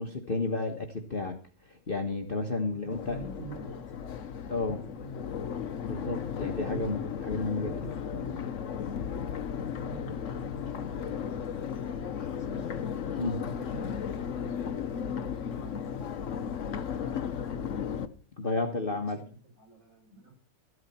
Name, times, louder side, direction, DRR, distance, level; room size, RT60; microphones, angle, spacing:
voice 1, 0.0-1.4 1.7-3.2 4.5-4.8 5.8-7.7 13.2-13.4 18.4-19.2, left 3 dB, 35° left, 2 dB, 1.3 m, -32 dB
voice 2, 2.7-3.8 4.5-5.5 6.2-6.9 7.4-8.4 9.6-11.2 11.5-12.7 13.2-16.1 16.5-17.9 18.4-20.4, right 3 dB, 40° right, -1 dB, 6.8 m, -47 dB
Crowd, 2.9-18.1, left 7 dB, 55° left, 1.0 m, -35 dB
14.5 x 12.5 x 4.3 m, 0.39 s
omnidirectional pair, 1.9 m